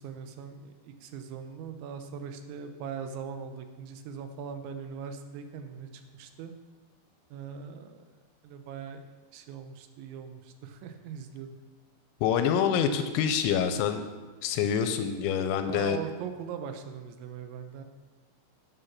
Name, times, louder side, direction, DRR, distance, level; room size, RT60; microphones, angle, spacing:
voice 1, 0.0-6.5 7.3-8.2 8.4-9.0 9.3-11.5 15.7-17.8, right 7 dB, 80° right, 7 dB, 3.0 m, -40 dB
voice 2, 12.2-14.0 14.4-16.0, left 8 dB, 85° left, 8 dB, 2.8 m, -26 dB
11.0 x 6.8 x 5.8 m, 1.3 s
omnidirectional pair, 5.5 m